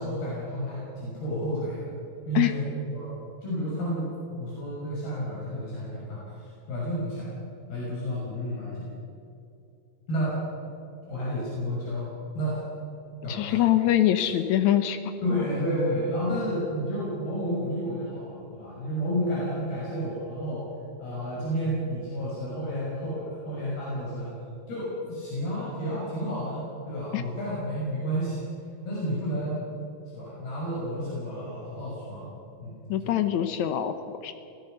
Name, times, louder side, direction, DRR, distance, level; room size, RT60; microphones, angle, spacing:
voice 1, 0.0-1.8 2.3-3.1 3.4-4.0 4.3-6.3 6.7-7.3 7.7-8.9 10.1-10.4 11.1-12.1 12.3-12.6 13.2-13.6 15.2-20.6 21.0-24.3 24.7-28.4 28.8-29.6 30.1-32.3 32.6-32.8 33.0-33.2, equal, 65° left, -7 dB, 8.2 m, -31 dB
voice 2, 13.3-15.0 27.1-27.2 32.9-34.3, left 12 dB, 85° left, 9 dB, 1.6 m, -24 dB
27.0 x 17.5 x 6.7 m, 2.7 s
omnidirectional pair, 4.7 m